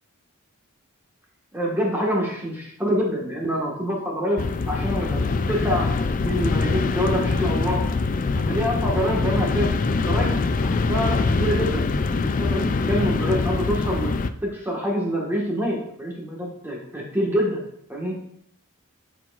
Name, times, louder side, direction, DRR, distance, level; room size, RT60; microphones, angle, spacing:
voice 1, 1.5-5.9 6.2-7.9 8.4-10.4 10.6-11.9 12.2-14.1 14.4-17.6 17.9-18.1, equal, 10° right, -3 dB, 1.5 m, -26 dB
sound 1, 4.4-14.3, left 3 dB, 40° left, 0.3 m, -23 dB
13.0 x 4.6 x 2.4 m, 0.68 s
head